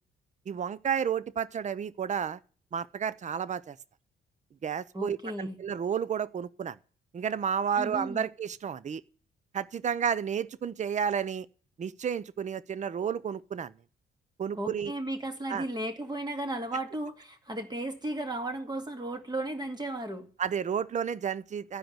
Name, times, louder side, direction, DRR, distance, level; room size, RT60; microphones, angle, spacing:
voice 1, 0.5-2.4 2.7-3.8 4.6-6.8 7.1-9.0 9.5-11.5 11.8-13.7 14.4-14.9 15.5-15.6 20.4-21.8, right 7 dB, 35° right, 0.6 m, -31 dB
voice 2, 4.9-5.6 7.8-8.3 14.5-20.3, right 1 dB, 20° right, 2.1 m, -35 dB
13.5 x 5.1 x 9.0 m
cardioid pair, 90°, 20 cm